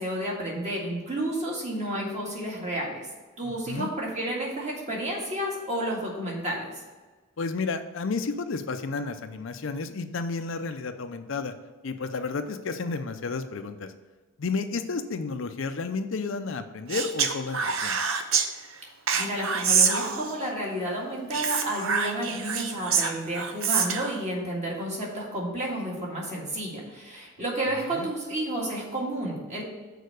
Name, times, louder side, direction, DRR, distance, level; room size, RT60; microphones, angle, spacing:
voice 1, 0.0-3.1 3.4-6.7 19.2-29.6, right 1 dB, 35° right, -3 dB, 1.9 m, -31 dB
voice 2, 3.4-3.9 7.4-11.5 11.8-13.9 14.4-18.0 27.8-28.1, left 4 dB, 65° left, 8 dB, 0.5 m, -32 dB
Speech, 16.9-18.5 19.1-20.5 21.3-24.2, right 6 dB, 70° right, 0.7 m, -26 dB
6.5 x 4.6 x 6.5 m, 1.3 s
head